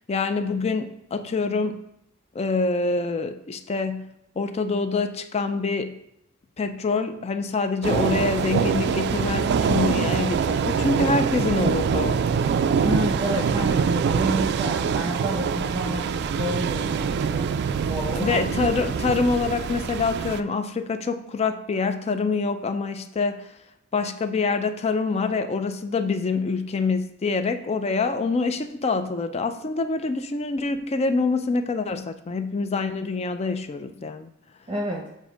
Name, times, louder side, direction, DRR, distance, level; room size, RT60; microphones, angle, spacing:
voice 1, 0.1-1.8 2.3-4.1 4.4-6.0 6.6-12.2 18.1-23.5 23.9-34.3, left 4 dB, 30° left, 9 dB, 0.4 m, -26 dB
sound 1, 7.8-20.4, right 6 dB, 55° right, 0.3 m, -24 dB
voice 2, 12.8-17.4 17.8-18.4 34.7-35.0, right 1 dB, 25° right, -2 dB, 0.7 m, -29 dB
7.2 x 2.6 x 5.0 m, 0.82 s
head